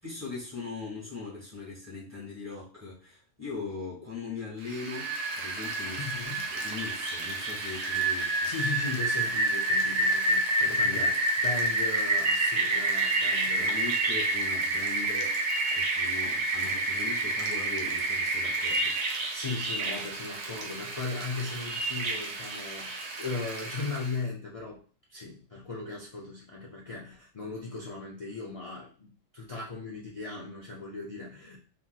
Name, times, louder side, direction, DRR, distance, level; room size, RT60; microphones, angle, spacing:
voice 1, 0.0-6.1 6.5-8.5 10.8-11.1 13.6-15.4 15.7-19.0, left 4 dB, 15° right, -5 dB, 1.4 m, -40 dB
Rain, 4.7-24.1, right 2 dB, 65° right, 0.4 m, -29 dB
voice 2, 6.0-6.5 8.5-11.1 11.4-13.8 19.3-24.8 25.1-31.6, left 3 dB, 60° left, -4 dB, 0.3 m, -37 dB
3.0 x 2.7 x 2.3 m, 0.40 s
omnidirectional pair, 1.3 m